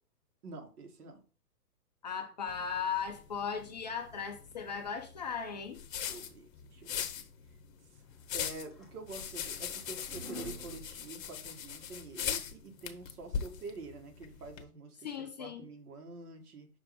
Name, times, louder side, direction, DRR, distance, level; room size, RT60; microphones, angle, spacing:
voice 1, 0.4-1.2 6.0-7.0 8.3-16.7, right 3 dB, 70° right, 1.7 m, -47 dB
voice 2, 2.0-5.8 15.0-15.7, left 6 dB, 30° left, 0.4 m, -37 dB
sound 1, 2.5-14.6, left 8 dB, 55° left, 1.0 m, -41 dB
sound 2, 8.2-11.9, right 1 dB, ahead, 1.0 m, -49 dB
6.0 x 3.2 x 4.9 m
hypercardioid pair, 140°, 47 cm